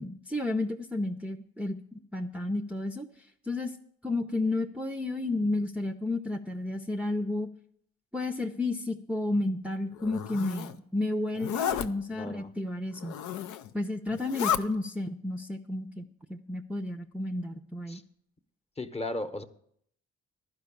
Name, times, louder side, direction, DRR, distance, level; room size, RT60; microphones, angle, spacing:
voice 1, 0.0-1.8 2.1-3.1 3.4-3.7 4.0-7.5 8.1-13.2 13.7-18.0, left 2 dB, 5° right, 0.5 m, -32 dB
Zipper (clothing), 10.0-10.7 11.3-11.9 13.0-13.7 14.1-14.6, left 10 dB, 80° left, 0.6 m, -32 dB
voice 2, 12.1-12.5 17.9-18.0 18.8-19.4, left 1 dB, 20° left, 0.9 m, -35 dB
11.5 x 5.2 x 8.5 m
cardioid pair, 70°, 29 cm